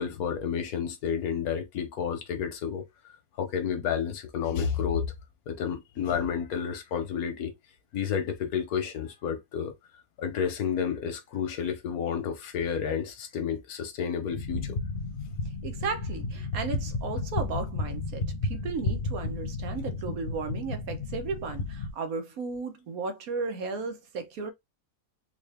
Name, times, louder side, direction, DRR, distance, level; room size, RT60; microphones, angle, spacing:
voice 1, 0.0-2.9 3.4-5.1 5.5-7.5 7.9-9.7 10.2-14.8, left 7 dB, 90° left, 1.4 m, -30 dB
sound 1, 14.3-21.9, left 3 dB, 45° left, 0.8 m, -33 dB
voice 2, 15.6-24.5, right 4 dB, 75° right, 1.3 m, -35 dB
3.8 x 2.5 x 3.4 m
omnidirectional pair, 1.5 m